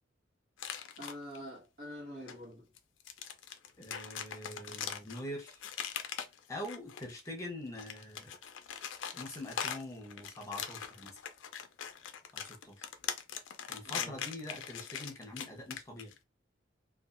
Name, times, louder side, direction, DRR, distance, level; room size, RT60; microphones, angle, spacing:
sound 1, 0.6-1.4 2.3-2.4 2.8-7.3 7.7-16.2, left 8 dB, 75° left, 0.4 m, -41 dB
voice 1, 1.0-2.7 13.8-14.2, equal, 55° right, 1.3 m, -46 dB
voice 2, 3.8-5.6 6.5-8.4 9.1-11.1 12.3-12.9 13.7-16.1, left 1 dB, 15° left, 0.7 m, -44 dB
2.6 x 2.3 x 2.4 m
head